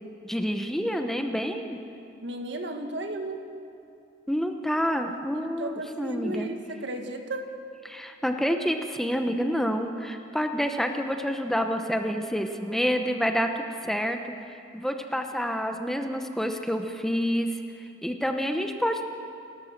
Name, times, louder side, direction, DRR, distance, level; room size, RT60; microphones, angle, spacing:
voice 1, 0.2-1.8 4.3-6.5 7.8-14.3 14.7-17.6 18.0-19.0, equal, ahead, 5 dB, 0.8 m, -28 dB
voice 2, 2.2-3.4 5.3-7.4, right 1 dB, 65° right, 5 dB, 1.7 m, -34 dB
29.0 x 13.5 x 6.6 m, 2.6 s
head